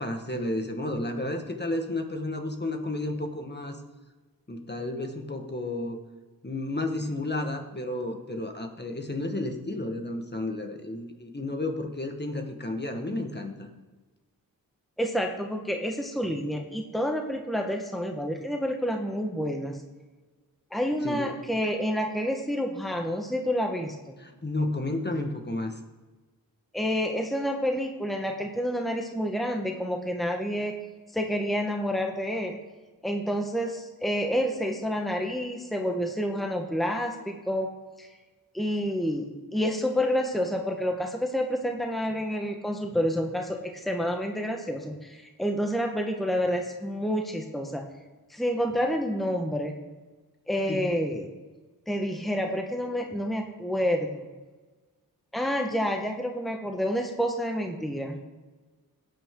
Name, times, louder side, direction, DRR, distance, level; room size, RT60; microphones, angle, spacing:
voice 1, 0.0-3.8 4.5-6.0 6.4-13.7 21.0-21.3 24.2-25.8 50.7-50.8, left 2 dB, 25° left, 4 dB, 1.6 m, -32 dB
voice 2, 15.0-19.8 20.7-24.2 26.7-30.7 31.1-32.6 33.0-37.7 38.0-38.1 38.5-47.8 48.3-49.8 50.5-51.3 51.9-54.3 55.3-58.3, equal, ahead, 3 dB, 1.3 m, -29 dB
15.5 x 9.1 x 3.8 m, 1.3 s
cardioid pair, 50°, 37 cm